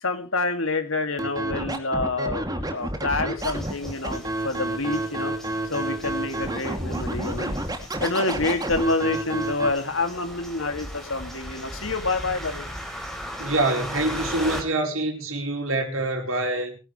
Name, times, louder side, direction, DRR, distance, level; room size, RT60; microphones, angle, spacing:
voice 1, 0.0-5.4 5.7-7.6 8.0-12.7, left 3 dB, 75° left, 2.5 m, -27 dB
Scratching (performance technique), 1.2-9.7, right 1 dB, 20° right, 2.7 m, -29 dB
sound 1, 3.4-14.6, equal, ahead, 4.0 m, -38 dB
voice 2, 13.4-16.8, right 2 dB, 80° right, 4.3 m, -25 dB
23.0 x 11.0 x 3.3 m
head